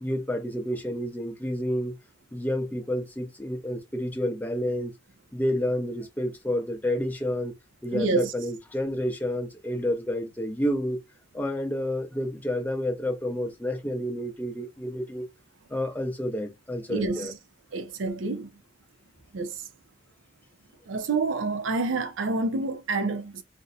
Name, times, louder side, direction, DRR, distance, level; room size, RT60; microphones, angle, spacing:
voice 1, 0.0-1.9 2.3-4.9 5.3-7.5 7.8-11.0 11.3-15.3 15.7-17.3, left 1 dB, 10° left, 0.6 m, -29 dB
voice 2, 7.9-8.3 16.9-17.2 17.7-18.5 19.3-19.5 20.9-23.4, right 3 dB, 75° right, 0.5 m, -28 dB
2.6 x 2.1 x 3.9 m
head